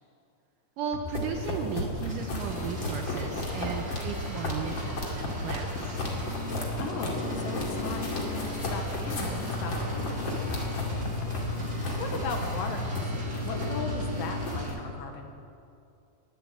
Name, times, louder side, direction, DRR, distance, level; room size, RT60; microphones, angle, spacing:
voice 1, 0.8-6.0, right 7 dB, 75° right, 3 dB, 2.0 m, -35 dB
sound 1, 0.9-7.0 7.8-14.6, left 2 dB, 90° left, 3.6 m, -40 dB
sound 2, 1.1-14.7, left 1 dB, 35° left, 2.6 m, -33 dB
sound 3, 2.1-14.7, right 1 dB, 25° right, 2.8 m, -45 dB
voice 2, 6.8-11.1 11.5-15.3, left 4 dB, 70° left, 3 dB, 2.7 m, -38 dB
22.0 x 7.8 x 8.4 m, 2.6 s
omnidirectional pair, 4.5 m